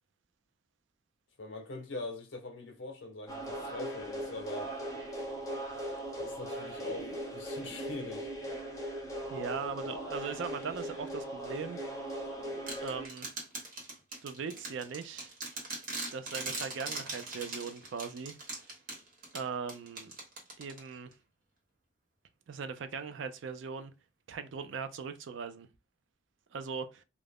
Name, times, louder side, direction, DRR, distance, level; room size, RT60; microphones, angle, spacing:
voice 1, 1.4-4.7 6.2-8.3, left 2 dB, 75° left, 0.7 m, -42 dB
sound 1, 3.3-13.1, right 1 dB, 15° left, 0.6 m, -39 dB
voice 2, 9.3-11.8 12.8-13.3 14.2-15.3 16.1-18.4 19.3-20.1 20.6-21.1 22.5-23.9 24.3-25.7 26.5-27.0, right 5 dB, 75° right, 0.4 m, -39 dB
sound 2, 12.7-21.1, right 2 dB, 45° right, 1.0 m, -41 dB
2.4 x 2.0 x 3.3 m
head